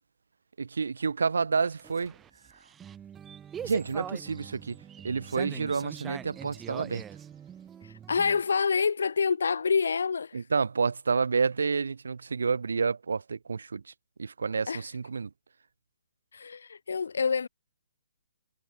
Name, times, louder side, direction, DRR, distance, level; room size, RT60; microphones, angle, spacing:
voice 1, 0.6-2.1 3.6-4.8 5.0-7.0 10.3-13.8 14.2-15.3, right 5 dB, 70° right, 0.7 m, -29 dB
sound 1, 1.6-8.4, right 8 dB, 15° right, 0.8 m, -43 dB
voice 2, 8.1-10.4 14.7-14.8 16.3-17.5, left 5 dB, 65° left, 0.6 m, -27 dB
figure-of-eight pair, 135°, 0 cm